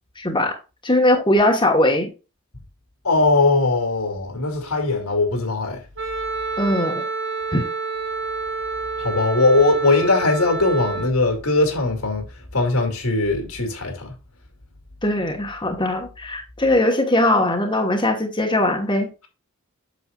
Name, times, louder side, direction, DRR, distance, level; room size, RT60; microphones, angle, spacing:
voice 1, 0.2-0.6 0.8-2.1 6.6-7.0 7.5-7.7 15.0-19.1, left 1 dB, 20° left, 1.3 m, -20 dB
voice 2, 3.0-5.8 9.0-12.2 12.5-14.2, left 3 dB, 80° left, 2.6 m, -20 dB
Wind instrument woodwind instrument, 6.0-11.1, right 4 dB, 55° right, 1.3 m, -28 dB
8.3 x 6.7 x 2.4 m
head